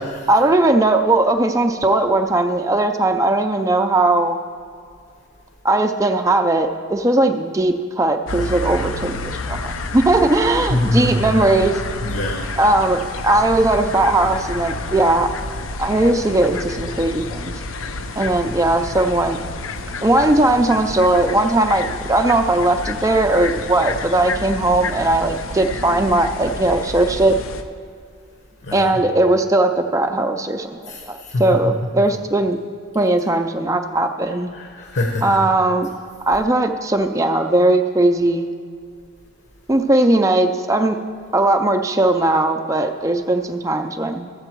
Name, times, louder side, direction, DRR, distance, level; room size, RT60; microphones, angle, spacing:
voice 1, 0.3-4.4 5.6-11.8 12.6-15.3 15.8-17.5 18.2-19.4 20.0-27.4 28.7-32.6 32.9-34.5 35.2-35.9 36.3-38.5 39.7-41.0 41.3-44.3, right 2 dB, 15° right, 5 dB, 0.4 m, -18 dB
sound 1, 8.3-27.6, left 2 dB, 70° left, 0.6 m, -29 dB
voice 2, 10.7-11.4 12.0-12.5 28.6-28.9 30.9-31.4 34.5-35.4, left 1 dB, 55° left, 1 dB, 1.1 m, -24 dB
13.5 x 7.7 x 4.5 m, 2.3 s
head